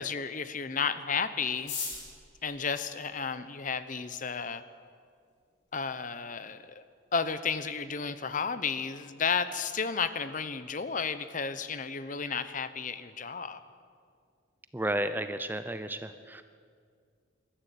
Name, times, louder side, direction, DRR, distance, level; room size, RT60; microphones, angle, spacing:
voice 1, 0.0-1.7 2.4-4.6 5.7-6.8 7.1-13.6, left 5 dB, 40° left, 12 dB, 0.8 m, -32 dB
sound 1, 1.5-3.8 4.6-4.7 4.9-5.0 5.2-5.7 6.0-6.1 6.3-6.7 7.1-7.3 7.6-7.9, left 5 dB, 60° left, 5.7 m, -40 dB
voice 2, 14.7-16.4, right 1 dB, 10° right, 10 dB, 0.6 m, -32 dB
21.0 x 13.5 x 9.1 m, 2.2 s
head